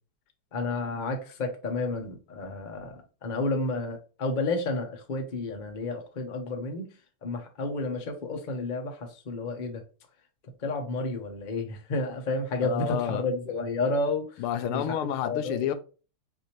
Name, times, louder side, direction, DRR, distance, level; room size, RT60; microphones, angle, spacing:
voice 1, 0.5-6.9 7.2-9.8 10.6-14.8 15.2-15.7, left 2 dB, 40° left, 0.6 m, -31 dB
voice 2, 12.6-13.2 14.4-15.7, left 10 dB, 80° left, 1.5 m, -29 dB
6.4 x 2.8 x 3.0 m
omnidirectional pair, 2.4 m